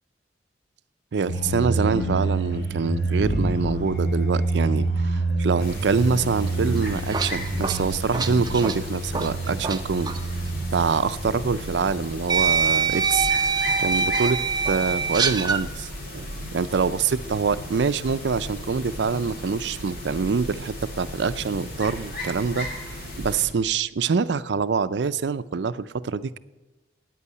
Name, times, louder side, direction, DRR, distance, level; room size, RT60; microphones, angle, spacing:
voice 1, 1.1-10.1 10.7-13.3 13.8-15.9 16.1-26.4, right 5 dB, 75° right, 0.5 m, -25 dB
sound 1, 1.3-13.2, right 2 dB, 85° left, 4.1 m, -28 dB
sound 2, 5.6-23.5, left 1 dB, 55° left, 2.7 m, -36 dB
sound 3, 6.8-9.8 10.0-10.2 11.4-11.5 12.3-15.6, right 5 dB, 25° right, 0.6 m, -24 dB
9.1 x 8.4 x 9.4 m
head